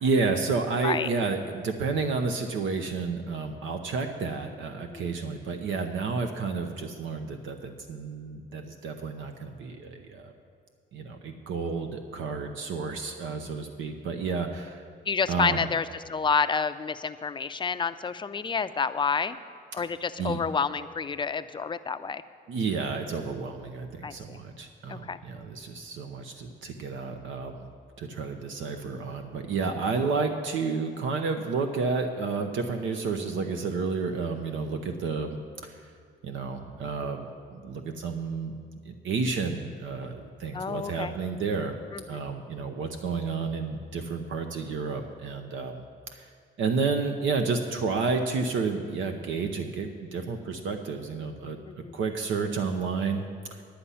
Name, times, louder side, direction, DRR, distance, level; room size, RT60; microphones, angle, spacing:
voice 1, 0.0-10.3 10.9-14.8 15.3-15.7 19.8-19.9 20.2-20.4 22.5-27.7 28.0-35.9 36.2-38.5 38.8-41.7 42.1-45.8 46.1-46.3 46.6-51.6 51.9-53.2 53.5-53.6, right 4 dB, 75° right, 5 dB, 0.8 m, -31 dB
voice 2, 15.1-19.4 19.7-22.2 24.0-24.4 24.9-25.2 40.5-41.1 41.9-42.3 51.7-51.9, left 5 dB, 25° left, 12 dB, 0.4 m, -29 dB
10.0 x 9.8 x 5.6 m, 2.2 s
cardioid pair, 90°, 20 cm